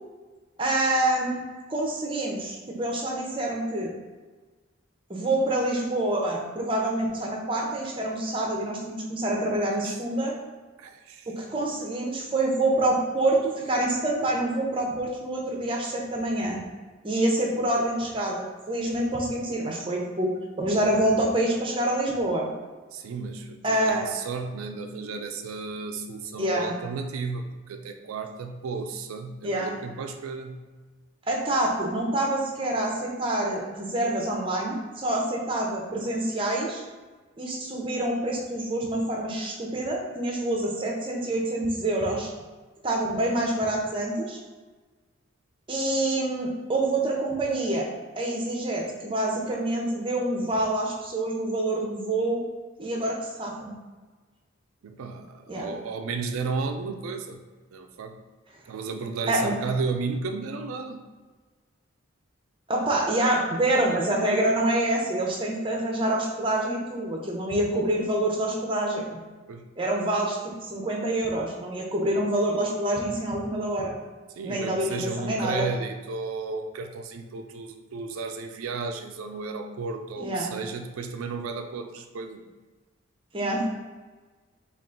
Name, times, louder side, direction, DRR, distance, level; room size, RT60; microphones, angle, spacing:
voice 1, 0.6-1.4 1.7-3.9 5.1-10.3 11.3-16.6 17.0-20.3 20.6-22.5 23.6-24.1 26.4-26.7 29.4-29.7 31.3-36.8 37.4-42.3 42.8-44.4 45.7-47.9 48.2-52.4 52.8-53.7 55.5-55.7 59.3-59.5 62.7-69.2 69.8-70.4 70.6-73.9 74.4-75.7 80.2-80.5 83.3-83.6, right 1 dB, 25° right, -1 dB, 0.6 m, -26 dB
voice 2, 10.8-11.3 22.9-30.7 54.8-57.4 57.7-58.2 58.7-61.1 69.5-69.7 74.4-82.4, right 4 dB, 85° right, 6 dB, 0.4 m, -33 dB
3.6 x 2.4 x 3.7 m, 1.3 s
head